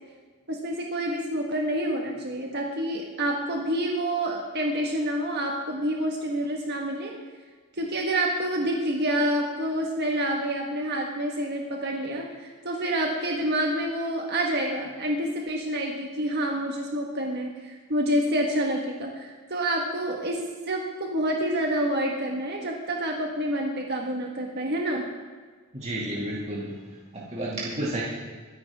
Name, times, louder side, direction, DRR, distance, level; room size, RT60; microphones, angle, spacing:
voice 1, 0.5-7.1 7.8-25.0, right 1 dB, 50° right, 0 dB, 1.5 m, -28 dB
voice 2, 25.7-26.8 27.1-28.0, right 1 dB, 30° right, -6 dB, 2.4 m, -31 dB
24.0 x 9.5 x 3.6 m, 1.5 s
head